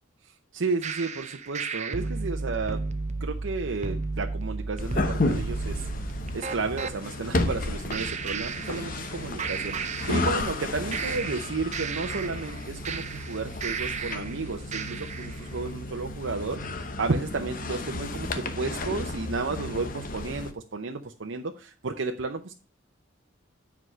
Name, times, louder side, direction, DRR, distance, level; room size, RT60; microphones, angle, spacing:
voice 1, 0.5-2.8 3.2-22.5, right 3 dB, 75° right, 4 dB, 0.7 m, -32 dB
sound 1, 0.8-6.9 7.9-9.1 9.4-10.6 10.9-14.3 14.7-15.3, right 4 dB, 40° right, 0.6 m, -33 dB
sound 2, 4.8-20.5, left 2 dB, 45° left, 0.9 m, -33 dB
7.8 x 4.8 x 6.1 m, 0.34 s
head